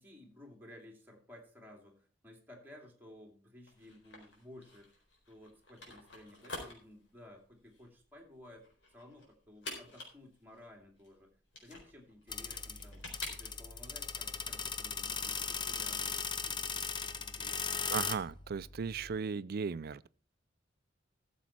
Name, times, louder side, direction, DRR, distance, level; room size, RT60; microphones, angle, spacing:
voice 1, 0.0-5.0 5.3-8.7 8.9-11.3 11.6-17.9, left 1 dB, 10° right, 2.6 m, -56 dB
sound 1, 3.7-13.9, left 2 dB, 85° left, 4.2 m, -49 dB
sound 2, 12.3-19.2, left 5 dB, 25° left, 0.7 m, -38 dB
voice 2, 17.9-20.1, right 5 dB, 55° right, 0.4 m, -36 dB
13.5 x 7.2 x 4.4 m
head